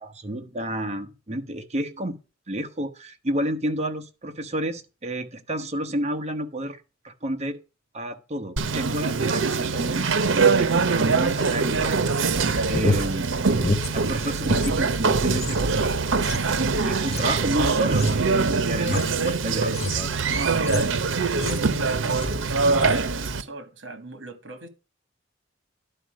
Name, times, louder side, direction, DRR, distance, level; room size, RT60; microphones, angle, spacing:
voice 1, 0.0-2.2 2.5-6.8 7.0-7.6 7.9-12.1 12.7-13.5 13.9-15.8 16.8-20.1, right 1 dB, 35° right, 1.1 m, -31 dB
Conversation, 8.6-23.4, right 4 dB, 85° right, 0.8 m, -23 dB
sound 1, 12.4-14.7 15.0-21.7 22.1-22.4 22.7-23.1, left 2 dB, 35° left, 0.9 m, -31 dB
voice 2, 15.8-16.6 20.3-24.7, right 2 dB, 70° right, 1.7 m, -40 dB
11.0 x 4.7 x 6.3 m
head